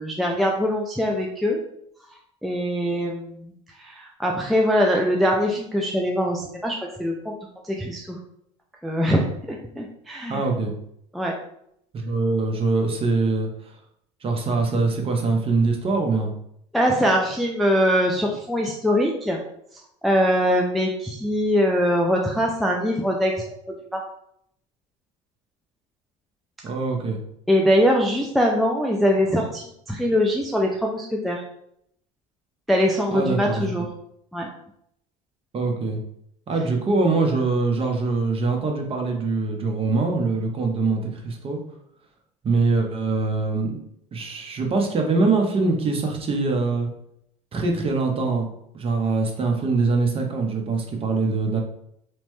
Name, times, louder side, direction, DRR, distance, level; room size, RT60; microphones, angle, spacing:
voice 1, 0.0-1.6 2.4-3.5 3.8-7.4 7.6-8.2 8.8-10.4 11.1-11.3 16.7-19.4 20.0-24.0 27.5-31.4 32.7-33.9 34.3-34.5, equal, ahead, 0 dB, 0.3 m, -22 dB
voice 2, 10.3-10.7 11.9-13.7 14.2-16.3 26.6-27.2 33.1-33.7 35.5-36.0 36.5-41.6 42.4-43.8 44.1-46.9 47.5-48.5 48.7-51.6, right 3 dB, 30° right, 2 dB, 0.7 m, -23 dB
3.0 x 2.1 x 3.0 m, 0.74 s
supercardioid pair, 95°, 19 cm